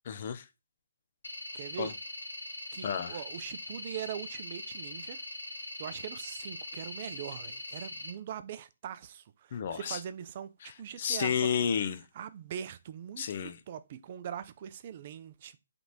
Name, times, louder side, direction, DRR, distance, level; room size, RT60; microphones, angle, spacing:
voice 1, 0.1-0.4 1.8-1.9 2.8-3.2 9.5-10.0 10.6-10.7 11.0-12.0 13.2-13.6, left 7 dB, 45° left, 0.5 m, -31 dB
sound 1, 1.2-8.1, left 2 dB, 85° left, 1.0 m, -42 dB
voice 2, 1.5-1.9 2.7-5.2 5.8-11.3 12.1-15.6, right 9 dB, 40° right, 0.4 m, -42 dB
3.4 x 3.0 x 4.0 m
figure-of-eight pair, 140°, 0 cm